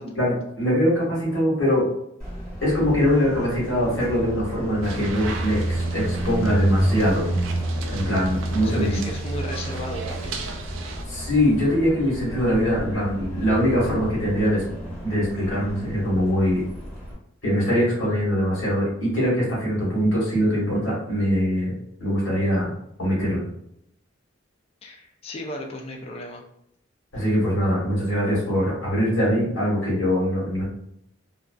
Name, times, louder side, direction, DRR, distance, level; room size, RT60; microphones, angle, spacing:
voice 1, 0.1-1.9 2.6-7.3 7.9-9.0 11.1-14.6 15.0-16.6 17.4-21.7 22.0-22.7 23.0-23.4 27.1-30.6, equal, 70° left, -6 dB, 1.3 m, -22 dB
Car passing by, 2.2-17.1, right 1 dB, 5° left, 1.3 m, -30 dB
sound 1, 4.8-11.0, right 4 dB, 70° right, 0.4 m, -38 dB
voice 2, 8.6-10.4 24.8-26.4, left 1 dB, 30° left, 1 dB, 0.3 m, -35 dB
2.4 x 2.3 x 2.2 m, 0.75 s
head